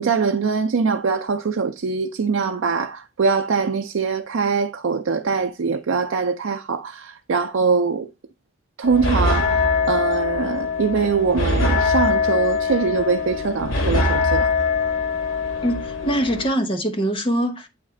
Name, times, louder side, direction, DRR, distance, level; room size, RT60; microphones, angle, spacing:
voice 1, 0.0-8.1 8.8-14.5, right 5 dB, 85° right, 0.5 m, -23 dB
sound 1, 8.8-16.5, left 4 dB, 90° left, 1.5 m, -22 dB
voice 2, 15.6-17.7, right 1 dB, 25° left, 0.9 m, -23 dB
8.0 x 3.2 x 3.7 m
head